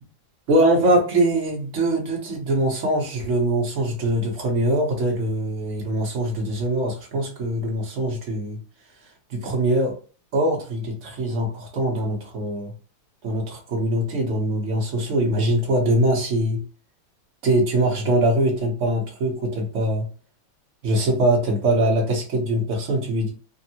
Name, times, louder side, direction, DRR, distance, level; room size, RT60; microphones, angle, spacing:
voice 1, 0.5-8.6 9.3-9.9 10.3-12.7 13.2-16.6 17.4-20.0 20.8-23.3, right 1 dB, 55° right, 1 dB, 0.8 m, -22 dB
3.5 x 2.1 x 2.8 m, 0.38 s
omnidirectional pair, 2.3 m